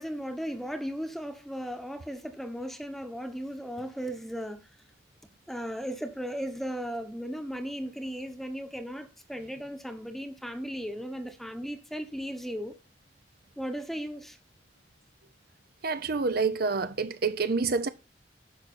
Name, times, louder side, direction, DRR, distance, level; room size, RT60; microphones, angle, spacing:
voice 1, 0.0-4.6 5.5-12.7 13.6-14.4, equal, ahead, 1.1 m, -36 dB
voice 2, 15.8-17.9, right 4 dB, 60° right, 0.7 m, -27 dB
11.0 x 6.2 x 4.3 m
head